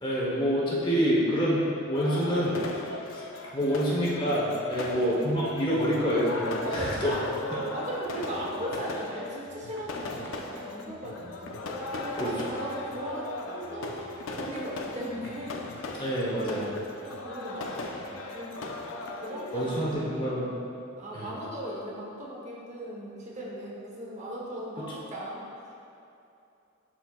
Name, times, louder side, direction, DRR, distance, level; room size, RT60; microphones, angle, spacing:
voice 1, 0.0-2.6 3.1-3.2 3.5-7.1 7.5-7.6 12.2-12.3 16.0-16.7 19.5-20.6 21.1-21.3, equal, 25° left, -5 dB, 1.1 m, -27 dB
sound 1, 1.9-19.9, left 2 dB, 80° left, 0.6 m, -38 dB
voice 2, 4.9-5.2 6.6-11.6 11.9-14.0 14.4-15.6 17.0-20.2 21.0-25.4, equal, 35° right, -4 dB, 1.1 m, -38 dB
11.5 x 4.4 x 2.4 m, 2.7 s
head